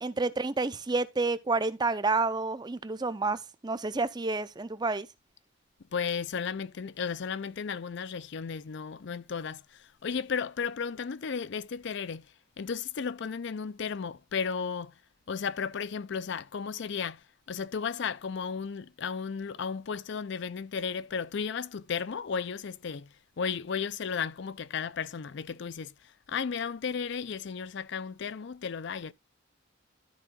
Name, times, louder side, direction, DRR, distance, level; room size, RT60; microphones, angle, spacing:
voice 1, 0.0-5.1, right 3 dB, 20° right, 0.5 m, -29 dB
voice 2, 5.9-12.2 12.6-14.9 15.3-17.2 17.5-23.1 23.4-25.9 26.3-29.1, left 6 dB, 60° left, 0.5 m, -34 dB
12.5 x 4.7 x 3.7 m
head